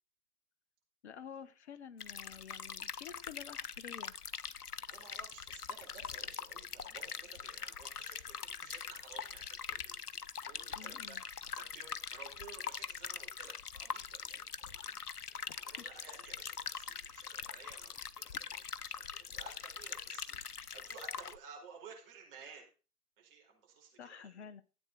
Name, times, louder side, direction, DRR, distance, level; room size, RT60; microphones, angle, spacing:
voice 1, 1.0-4.2 10.7-11.2 15.3-15.8 24.0-24.6, left 7 dB, 45° left, 14 dB, 1.0 m, -50 dB
sound 1, 2.0-21.4, left 7 dB, 80° left, 0.8 m, -43 dB
voice 2, 4.9-22.7 23.2-24.4, right 6 dB, 35° right, 0 dB, 4.8 m, -55 dB
13.5 x 8.2 x 4.1 m, 0.35 s
figure-of-eight pair, 120°, 45 cm